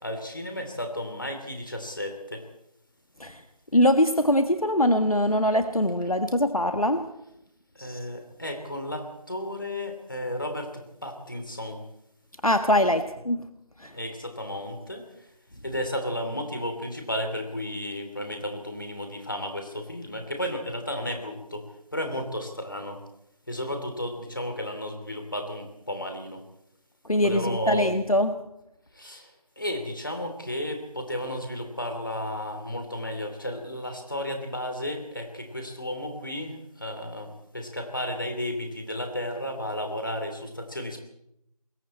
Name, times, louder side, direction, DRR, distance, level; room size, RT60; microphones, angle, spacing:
voice 1, 0.0-2.5 7.7-11.8 13.9-15.0 15.6-23.0 23.5-26.4 27.2-27.9 28.9-41.0, left 1 dB, 30° left, 5 dB, 3.1 m, -33 dB
voice 2, 3.7-7.1 7.8-8.0 12.4-13.5 13.8-13.9 27.1-28.4, left 1 dB, 65° left, 8 dB, 1.6 m, -23 dB
28.5 x 22.0 x 4.4 m, 0.82 s
figure-of-eight pair, 175°, 20 cm